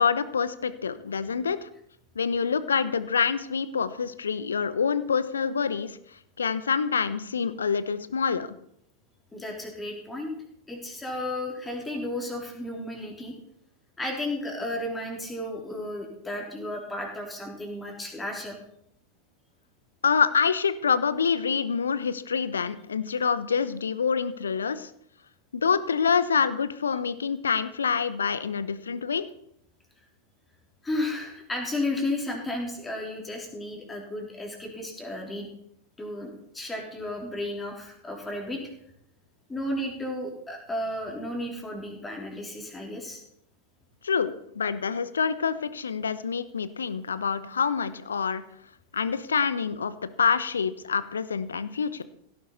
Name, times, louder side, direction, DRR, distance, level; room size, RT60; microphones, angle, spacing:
voice 1, 0.0-1.7 2.1-6.0 6.4-8.5 20.0-24.9 25.5-29.3 44.0-48.4 48.9-49.9 50.2-52.0, left 6 dB, 70° left, 15 dB, 0.9 m, -26 dB
voice 2, 9.3-10.3 10.7-13.3 14.0-18.6 30.8-35.5 36.0-38.6 39.5-43.2, left 1 dB, 10° left, 0 dB, 3.6 m, -33 dB
17.0 x 11.0 x 4.1 m, 0.72 s
figure-of-eight pair, 90°, 0 cm